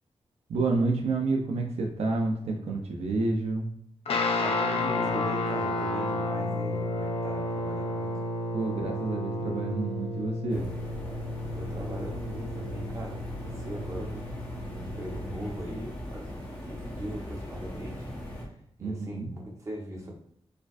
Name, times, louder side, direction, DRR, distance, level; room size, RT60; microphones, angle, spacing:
voice 1, 0.5-3.7 8.5-10.7 18.8-19.3, right 3 dB, 80° right, 1 dB, 0.5 m, -29 dB
Guitar, 4.1-15.5, left 2 dB, 65° left, 0.5 m, -32 dB
voice 2, 4.4-8.2 11.5-14.3 14.6-20.1, right 1 dB, 30° right, -1 dB, 0.9 m, -40 dB
sound 1, 10.5-18.4, left 1 dB, 15° left, 1.0 m, -39 dB
4.3 x 2.4 x 2.5 m, 0.66 s
wide cardioid pair, 140°, 11 cm